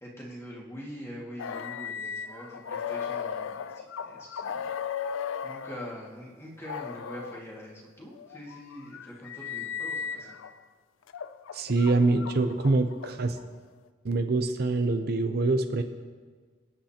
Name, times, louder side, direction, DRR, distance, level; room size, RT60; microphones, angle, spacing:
voice 1, 0.0-4.7 5.4-10.4, equal, 15° left, -4 dB, 2.0 m, -44 dB
sound 1, 1.4-5.9 6.6-7.4 8.1-10.5 11.1-13.4, left 7 dB, 90° left, 0.4 m, -36 dB
voice 2, 11.5-13.4 14.0-15.8, right 3 dB, 50° right, 7 dB, 0.6 m, -25 dB
24.0 x 9.4 x 2.9 m, 1.6 s
head